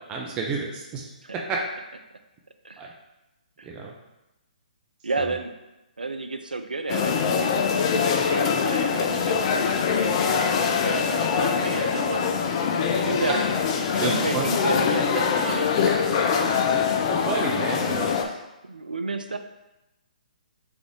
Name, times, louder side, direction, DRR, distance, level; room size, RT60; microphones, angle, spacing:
voice 1, 0.1-1.0 1.5-1.6 2.8-2.9 3.6-3.9 5.2-5.3 13.3-13.4 13.9-14.4 16.4-16.8 17.1-18.4, right 4 dB, 20° right, -1 dB, 0.6 m, -31 dB
voice 2, 5.0-5.5 6.0-7.2 7.7-10.2 10.8-13.4 13.8-15.7 18.0-18.3 18.7-19.4, right 3 dB, 85° right, 8 dB, 0.4 m, -32 dB
sound 1, 6.9-18.3, left 6 dB, 35° left, 0.5 m, -23 dB
3.5 x 3.5 x 3.7 m, 0.97 s
figure-of-eight pair, 130°, 5 cm